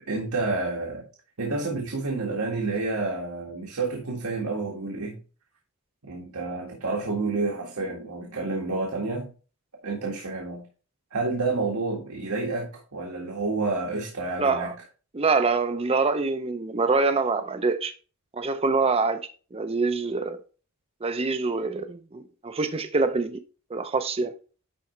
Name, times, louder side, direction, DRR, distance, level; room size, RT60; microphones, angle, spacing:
voice 1, 0.1-1.1 1.4-5.2 6.0-9.3 9.8-10.7 11.1-14.7, right 3 dB, 85° right, 1.8 m, -29 dB
voice 2, 14.4-14.7 15.1-17.9 18.3-20.4 21.0-23.4 23.7-24.3, right 4 dB, 25° right, 0.5 m, -25 dB
10.5 x 4.1 x 3.2 m
head